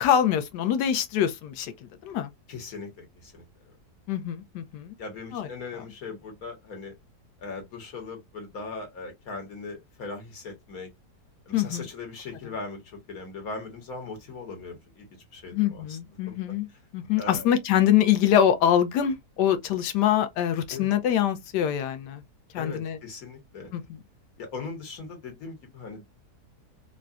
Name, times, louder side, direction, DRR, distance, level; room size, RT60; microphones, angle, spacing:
voice 1, 0.0-1.7 2.0-2.3 4.1-4.9 5.3-5.5 11.5-11.8 15.5-16.7 16.9-22.2 22.5-23.0 23.7-23.8, left 10 dB, 85° left, 1.2 m, -24 dB
voice 2, 2.5-3.4 5.0-6.9 7.4-10.9 11.5-16.4 16.7-16.8 17.2-17.5 20.7-20.9 22.5-23.7 24.4-26.1, left 4 dB, 60° left, 1.6 m, -39 dB
3.8 x 2.1 x 2.3 m
omnidirectional pair, 1.8 m